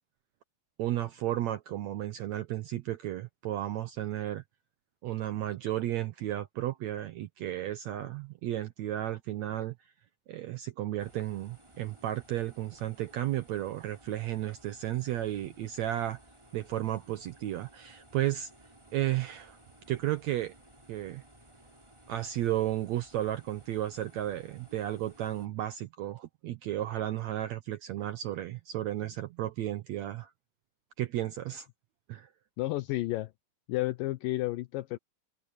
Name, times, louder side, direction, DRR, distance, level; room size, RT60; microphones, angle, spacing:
voice 1, 0.8-4.4 5.0-9.7 10.3-16.2 16.5-18.5 18.9-19.6 19.9-20.5 20.9-21.2 22.1-30.3 31.0-31.7 32.1-32.3, right 13 dB, 75° right, 1.7 m, -33 dB
sound 1, 11.0-25.5, right 1 dB, 10° right, 4.0 m, -58 dB
voice 2, 32.6-33.3 33.7-35.0, left 17 dB, 80° left, 2.4 m, -31 dB
omnidirectional pair, 4.0 m